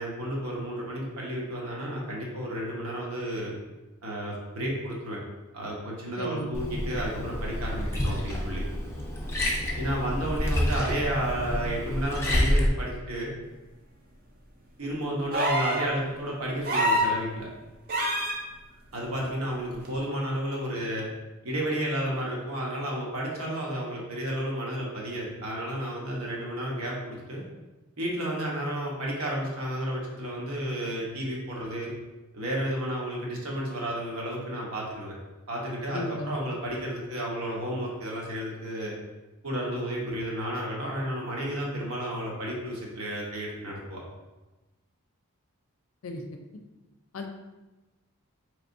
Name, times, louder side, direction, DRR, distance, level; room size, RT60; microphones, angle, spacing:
voice 1, 0.0-3.5 4.0-5.2 5.5-8.6 9.8-13.3 14.8-17.5 18.9-21.1 21.4-27.4 28.0-31.9 32.3-35.1 35.5-38.9 39.4-44.0, right 1 dB, 70° right, -3 dB, 1.0 m, -32 dB
voice 2, 6.2-6.5 35.9-36.4 46.0-46.2 47.1-47.3, left 1 dB, 70° left, 4 dB, 0.5 m, -34 dB
Liquid, 6.5-12.7, left 1 dB, 10° left, 0.5 m, -28 dB
sound 1, 15.3-15.9 16.7-17.2 17.9-18.4 19.9-20.0, equal, 40° right, 0.5 m, -25 dB
4.3 x 3.2 x 2.6 m, 1.1 s
head